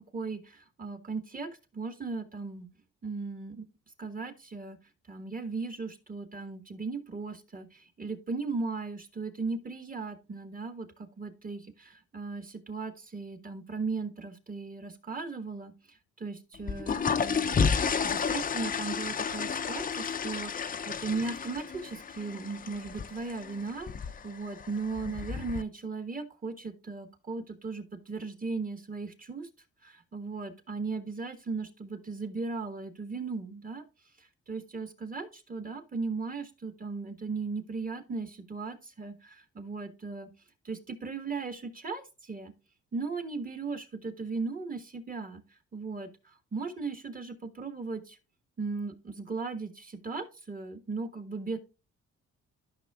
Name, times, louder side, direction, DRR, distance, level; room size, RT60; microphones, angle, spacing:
voice 1, 0.0-2.7 3.0-3.6 4.0-4.8 5.1-23.9 24.2-29.5 29.8-33.8 34.2-40.3 40.6-42.5 42.9-48.2 48.6-51.6, right 4 dB, 30° right, 8 dB, 1.5 m, -37 dB
sound 1, 16.5-25.6, left 6 dB, 30° left, 0.5 m, -32 dB
12.5 x 5.8 x 2.4 m, 0.30 s
cardioid pair, 90°, 30 cm